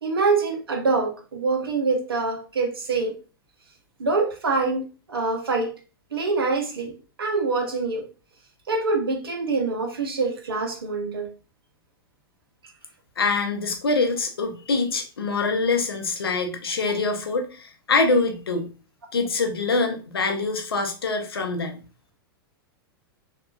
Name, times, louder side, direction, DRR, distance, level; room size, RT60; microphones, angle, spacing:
voice 1, 0.0-3.1 4.0-4.8 5.1-5.7 6.1-6.9 7.2-8.0 8.7-11.3, right 3 dB, 85° right, 4 dB, 0.7 m, -25 dB
voice 2, 13.2-18.7 19.1-21.8, left 3 dB, 90° left, 5 dB, 0.6 m, -24 dB
2.8 x 2.3 x 2.3 m, 0.35 s
hypercardioid pair, 105°, 12 cm